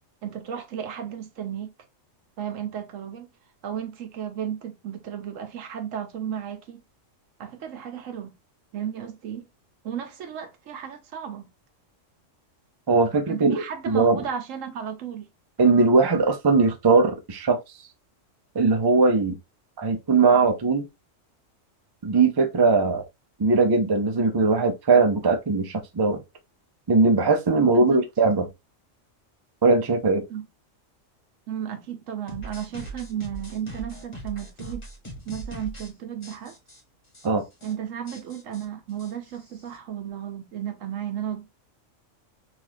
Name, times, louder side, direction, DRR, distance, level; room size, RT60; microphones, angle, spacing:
voice 1, 0.2-1.7 2.4-3.3 3.6-6.8 7.4-8.3 8.7-9.5 9.8-11.5 13.3-15.3 27.7-28.0 30.3-30.5 31.5-34.8 35.3-36.6 37.6-41.5, right 9 dB, 80° right, 1.1 m, -34 dB
voice 2, 12.9-13.5 13.9-14.2 15.6-17.6 18.5-19.3 19.8-20.9 22.0-23.0 23.4-26.2 26.9-28.5 29.6-30.2 37.2-37.5, right 3 dB, 40° right, 0.3 m, -20 dB
sound 1, 32.3-35.9 36.2-36.8 37.1-37.3 37.5-37.7 38.1-39.8, right 2 dB, 25° left, 1.3 m, -40 dB
3.6 x 2.5 x 2.9 m
omnidirectional pair, 1.3 m